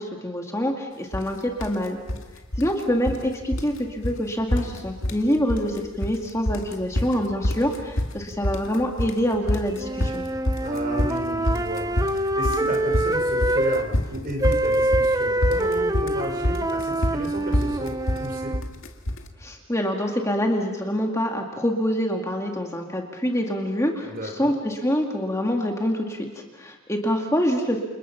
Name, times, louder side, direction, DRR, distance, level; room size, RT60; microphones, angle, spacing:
voice 1, 0.0-2.0 2.6-10.2 19.4-27.8, equal, 15° left, 2 dB, 2.0 m, -26 dB
sound 1, 1.1-1.3 1.6-2.2 2.5-3.3 3.5-3.8 4.0-4.2 4.5-5.2 5.5-6.2 6.5-19.3, left 1 dB, 65° left, 2.2 m, -26 dB
sound 2, 9.8-13.9 14.4-18.6, right 1 dB, 15° right, 0.8 m, -25 dB
voice 2, 10.6-18.6 24.0-24.5, equal, 45° right, 2 dB, 5.1 m, -33 dB
30.0 x 27.5 x 5.8 m, 1.1 s
head